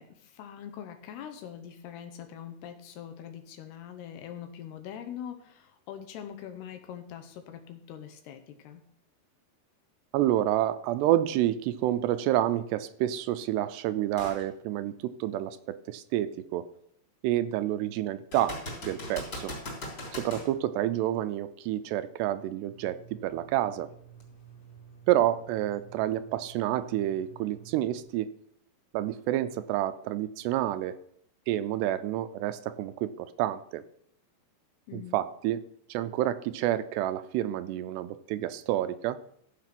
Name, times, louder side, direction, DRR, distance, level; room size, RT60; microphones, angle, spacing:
voice 1, 0.0-8.8 34.9-35.2, left 9 dB, 75° left, 7 dB, 2.9 m, -43 dB
voice 2, 10.1-16.7 17.2-18.6 18.8-19.5 20.2-23.9 25.1-28.3 28.9-31.0 31.5-33.8 34.9-35.6 35.9-39.2, right 13 dB, 80° right, 12 dB, 2.7 m, -29 dB
sound 1, 14.2-14.4 15.0-15.1 18.3-20.5 24.2-24.3, left 1 dB, 30° left, 4.2 m, -39 dB
sound 2, 22.7-28.0, right 7 dB, 45° left, 3.5 m, -51 dB
15.0 x 7.6 x 6.0 m, 0.66 s
omnidirectional pair, 4.9 m